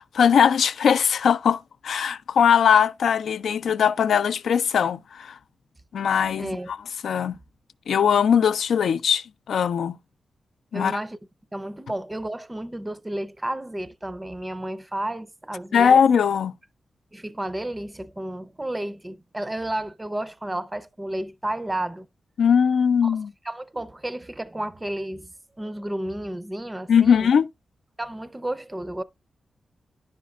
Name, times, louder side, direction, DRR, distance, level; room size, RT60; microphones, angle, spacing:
voice 1, 0.0-5.4 5.9-6.8 7.0-7.4 7.9-10.0 10.7-11.0 15.7-16.5 22.4-23.3 26.9-27.5, left 7 dB, 85° left, 0.3 m, -20 dB
voice 2, 6.4-6.7 10.7-11.2 11.5-15.9 17.1-22.1 23.0-23.2 23.4-27.3 28.0-29.0, right 1 dB, 15° right, 0.4 m, -32 dB
10.0 x 5.1 x 2.3 m
cardioid pair, 75°, 0 cm